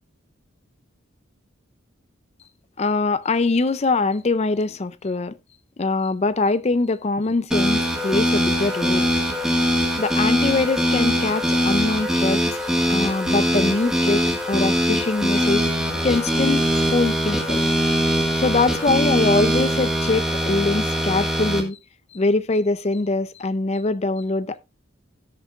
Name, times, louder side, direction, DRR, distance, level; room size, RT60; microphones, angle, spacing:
voice 1, 2.8-5.4 5.8-9.1 10.0-12.4 12.9-17.6 18.4-21.8 22.1-24.6, left 3 dB, 30° left, 0.4 m, -23 dB
sound 1, 7.5-21.6, equal, 5° right, 1.6 m, -22 dB
17.0 x 6.5 x 2.4 m
head